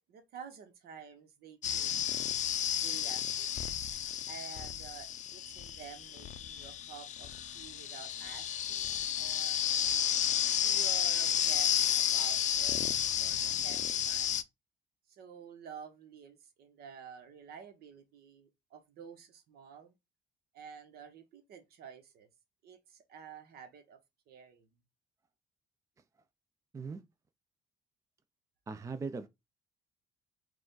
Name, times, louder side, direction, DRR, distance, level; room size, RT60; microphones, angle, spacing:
voice 1, 0.1-2.3 2.8-3.8 4.3-9.6 10.1-12.8 13.2-14.4 15.1-20.0 20.5-22.3 22.6-24.0 24.3-24.7, right 7 dB, 65° right, 1.2 m, -51 dB
sound 1, 1.6-14.4, left 10 dB, 45° left, 0.5 m, -32 dB
voice 2, 28.7-29.3, right 4 dB, 20° right, 0.4 m, -39 dB
4.8 x 2.4 x 3.9 m
cardioid pair, 110°, 17 cm